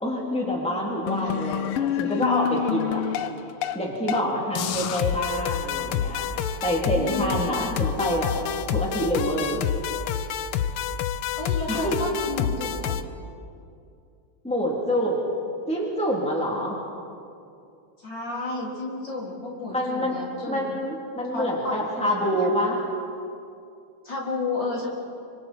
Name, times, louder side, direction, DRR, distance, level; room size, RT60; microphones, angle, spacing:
voice 1, 0.0-3.0 3.7-6.3 6.6-8.3 8.7-9.6 11.7-12.1 14.4-15.2 15.7-16.8 19.7-20.2 20.5-22.8, equal, 5° left, -3 dB, 3.5 m, -26 dB
sound 1, 1.1-3.8 4.1-4.3 4.6-13.0, left 9 dB, 80° left, 1.7 m, -28 dB
voice 2, 6.9-7.8 11.4-13.0 18.0-20.8 21.3-22.5 24.0-24.9, left 3 dB, 55° left, -3 dB, 4.5 m, -32 dB
28.5 x 25.5 x 4.7 m, 2.5 s
omnidirectional pair, 2.3 m